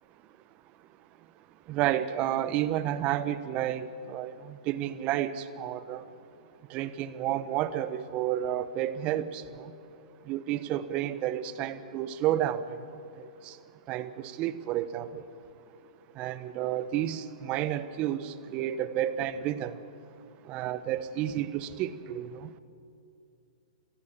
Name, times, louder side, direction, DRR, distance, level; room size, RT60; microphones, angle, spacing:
voice 1, 1.7-6.0 6.7-9.7 10.3-12.8 13.4-13.6 13.9-15.2 16.2-19.8 20.5-22.5, right 12 dB, 35° right, 13 dB, 1.1 m, -31 dB
27.5 x 16.5 x 7.4 m, 2.6 s
hypercardioid pair, 120°, 4 cm